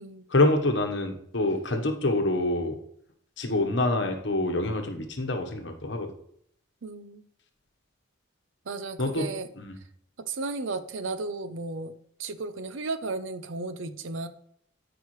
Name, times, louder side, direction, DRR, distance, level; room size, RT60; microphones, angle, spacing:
voice 1, 0.3-2.8 3.4-6.1 9.0-9.3 9.6-9.7, left 2 dB, 65° left, 5 dB, 1.3 m, -26 dB
voice 2, 6.8-7.3 8.7-9.5 10.2-11.9 12.2-14.3, right 3 dB, 75° right, 12 dB, 0.7 m, -34 dB
13.0 x 4.9 x 3.2 m, 0.69 s
head